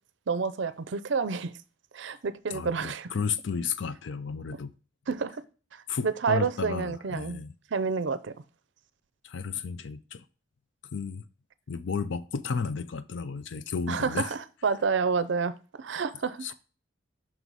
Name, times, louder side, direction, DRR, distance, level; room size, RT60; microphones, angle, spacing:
voice 1, 0.3-1.5 1.9-3.1 5.1-5.4 5.7-7.4 7.7-8.3 13.9-16.5, right 5 dB, 70° right, 0.5 m, -29 dB
voice 2, 2.5-4.7 5.9-7.5 9.2-10.2 10.9-11.2 11.7-14.3 16.4-16.5, left 5 dB, 70° left, 0.5 m, -33 dB
6.0 x 4.1 x 4.6 m
head